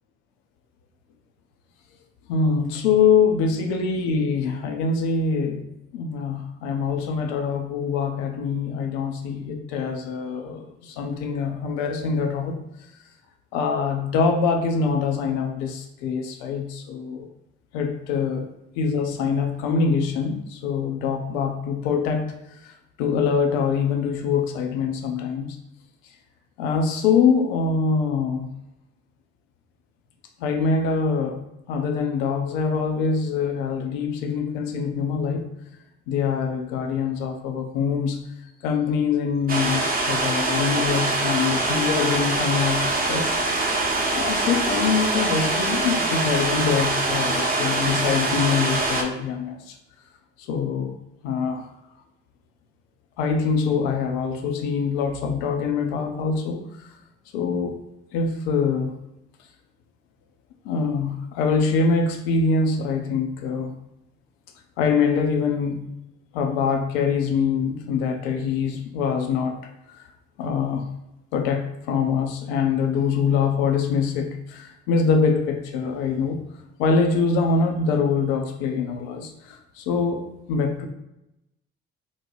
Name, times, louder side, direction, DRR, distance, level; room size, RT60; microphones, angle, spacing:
voice 1, 2.3-5.6 5.9-12.6 13.5-17.3 17.7-18.4 18.8-22.3 23.0-25.6 26.6-28.5 30.4-31.4 31.7-35.5 36.1-38.2 38.6-43.7 44.1-49.7 50.5-50.9 51.2-51.7 53.2-56.9 57.3-57.8 58.1-58.9 60.6-63.7 64.8-65.8 66.3-69.6 70.4-70.9 71.3-76.4 76.8-80.9, left 5 dB, 85° left, 4 dB, 0.5 m, -24 dB
sound 1, 39.5-49.0, right 2 dB, 30° right, 0.8 m, -24 dB
3.1 x 2.2 x 4.0 m, 0.87 s
hypercardioid pair, 50°, 30 cm